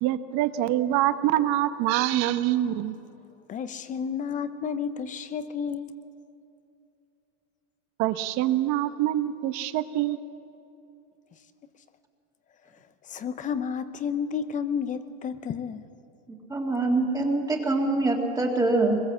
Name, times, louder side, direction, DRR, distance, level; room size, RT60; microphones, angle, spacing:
voice 1, 0.0-2.9 8.0-10.2, right 13 dB, 40° right, 10 dB, 1.1 m, -25 dB
voice 2, 3.5-6.0 13.0-15.9, left 7 dB, 20° left, 12 dB, 0.6 m, -31 dB
voice 3, 16.3-19.0, right 2 dB, 10° right, 0 dB, 2.0 m, -24 dB
23.5 x 21.5 x 7.4 m, 2.7 s
supercardioid pair, 150°, 41 cm